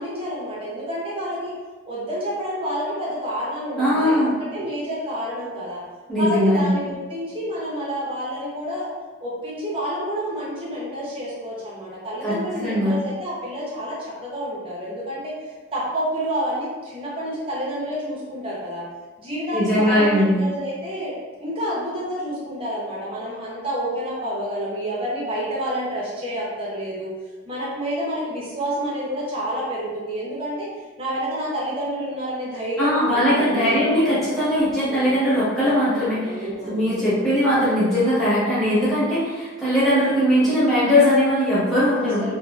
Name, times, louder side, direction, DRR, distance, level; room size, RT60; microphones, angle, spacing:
voice 1, 0.0-1.6 1.9-5.8 6.2-8.9 9.2-18.8 19.2-21.1 21.4-27.1 27.4-30.7 31.0-33.8 34.5-35.1 36.2-36.8 38.7-38.9 42.2-42.4, equal, 30° right, -6 dB, 0.7 m, -29 dB
voice 2, 3.8-4.3 6.1-6.7 12.2-13.0 19.5-20.4 32.8-42.2, equal, ahead, -13 dB, 1.1 m, -20 dB
2.5 x 2.5 x 2.3 m, 1.4 s
head